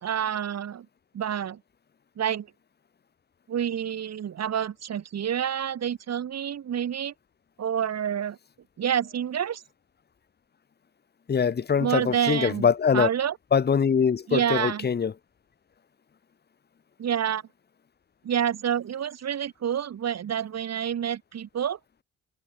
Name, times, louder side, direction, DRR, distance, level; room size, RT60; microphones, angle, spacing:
voice 1, 0.0-0.9 1.1-1.6 2.2-2.5 3.5-7.1 7.6-8.4 8.8-9.6 11.8-13.4 14.3-14.9 17.0-17.4 18.2-21.8, right 9 dB, 60° right, 4.6 m, -28 dB
voice 2, 11.3-13.1 13.5-15.1, left 6 dB, 35° left, 1.3 m, -23 dB
cardioid pair, 90°, 30 cm